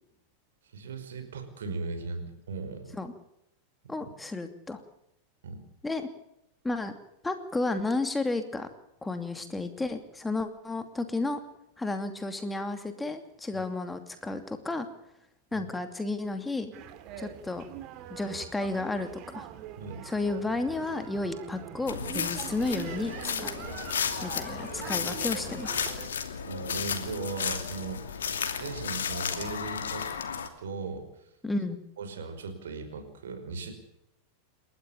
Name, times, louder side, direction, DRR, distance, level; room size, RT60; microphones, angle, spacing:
voice 1, 0.7-3.0 5.4-5.6 15.5-15.7 19.8-20.0 26.5-30.1 30.4-31.1 32.0-33.7, right 4 dB, 65° right, 7 dB, 5.3 m, -38 dB
voice 2, 3.9-4.8 5.8-6.1 6.6-7.0 7.2-8.7 9.0-11.4 11.8-14.9 15.5-16.7 17.2-17.6 18.1-19.1 19.3-19.5 20.0-23.7 24.2-25.8 31.4-31.8, left 2 dB, 10° left, 7 dB, 2.7 m, -32 dB
sound 1, 16.7-26.1, right 11 dB, 40° right, 2.5 m, -43 dB
sound 2, 21.9-30.5, left 7 dB, 70° left, 2.7 m, -33 dB
29.0 x 14.0 x 7.2 m, 0.81 s
figure-of-eight pair, 90°, 0 cm